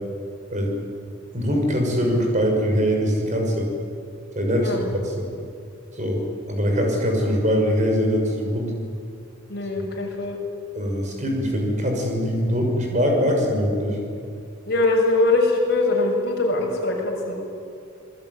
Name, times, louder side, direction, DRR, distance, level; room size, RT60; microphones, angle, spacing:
voice 1, 1.3-3.7 4.3-5.3 5.9-8.7 9.8-9.9 10.7-14.0, equal, 35° right, 1 dB, 6.3 m, -22 dB
voice 2, 9.5-10.4 14.7-17.3, left 2 dB, 50° left, -1 dB, 6.9 m, -22 dB
27.5 x 20.0 x 9.8 m, 2.4 s
head